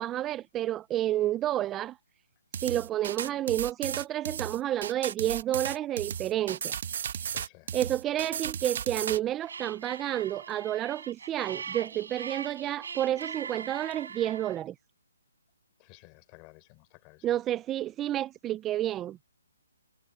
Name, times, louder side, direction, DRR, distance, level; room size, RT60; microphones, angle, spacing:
voice 1, 0.0-2.0 2.6-6.8 7.1-7.2 7.7-14.7 17.2-19.2, right 12 dB, 15° right, 0.4 m, -30 dB
sound 1, 2.5-9.2, right 8 dB, 45° right, 1.0 m, -34 dB
voice 2, 7.3-7.7 15.8-17.3, left 30 dB, 20° left, 4.2 m, -54 dB
sound 2, 9.4-14.6, right 6 dB, 65° right, 6.8 m, -41 dB
hypercardioid pair, 165°, 0 cm